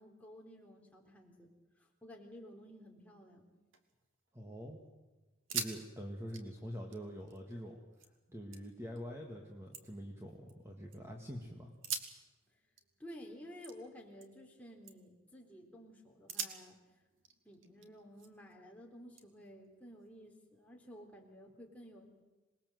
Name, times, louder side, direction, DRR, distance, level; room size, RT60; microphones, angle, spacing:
voice 1, 0.0-3.5 13.0-16.8 17.5-22.1, equal, 5° left, 0 dB, 3.6 m, -53 dB
sound 1, 3.5-4.5 4.9-5.0 5.3-5.8 6.1-8.1 8.5-9.0 9.4-11.0 11.7-14.5 14.8-15.2 15.7-15.8 16.3-18.5 19.2-20.3, right 6 dB, 70° right, 2.3 m, -46 dB
voice 2, 4.3-4.8 5.5-7.8 8.3-11.7, equal, 15° right, 1 dB, 2.0 m, -45 dB
27.0 x 20.5 x 7.9 m, 1.2 s
head